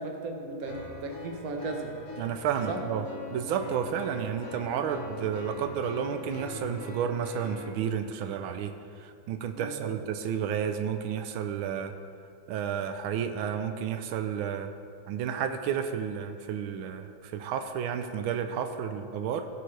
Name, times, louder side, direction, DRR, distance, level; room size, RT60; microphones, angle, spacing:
voice 1, 0.0-1.9 2.7-2.8 3.4-3.6 9.5-10.0, right 3 dB, 50° right, 2 dB, 1.4 m, -36 dB
sound 1, 0.7-7.7, left 3 dB, 45° left, 1.7 m, -41 dB
voice 2, 2.2-3.0 3.3-11.9 12.5-14.7 15.1-19.5, right 8 dB, 90° right, 8 dB, 1.5 m, -31 dB
17.0 x 7.7 x 3.3 m, 2.4 s
omnidirectional pair, 2.2 m